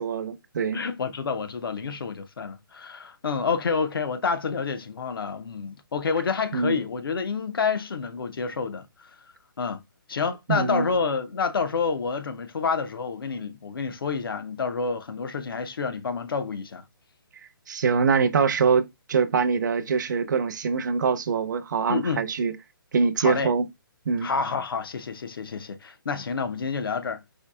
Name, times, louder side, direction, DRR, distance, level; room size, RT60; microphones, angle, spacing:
voice 1, 0.0-0.8 6.5-6.8 10.5-10.9 17.7-22.5 22.9-23.7 24.1-24.3, right 5 dB, 55° right, 0.5 m, -24 dB
voice 2, 0.7-9.1 9.6-9.8 10.1-16.8 21.9-22.2 23.2-23.5 24.2-27.2, left 5 dB, 80° left, 0.7 m, -28 dB
4.5 x 2.7 x 2.2 m
hypercardioid pair, 165°, 12 cm